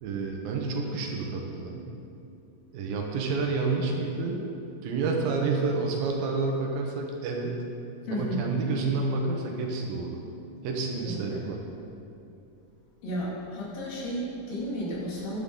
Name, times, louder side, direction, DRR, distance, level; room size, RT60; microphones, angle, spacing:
voice 1, 0.0-1.8 2.7-4.4 4.8-7.6 8.1-10.2 10.6-11.6, right 3 dB, 85° right, 1 dB, 2.8 m, -29 dB
voice 2, 8.1-8.4 11.1-11.4 13.0-15.4, equal, 80° left, -5 dB, 4.1 m, -33 dB
12.0 x 11.0 x 3.8 m, 2.7 s
omnidirectional pair, 4.1 m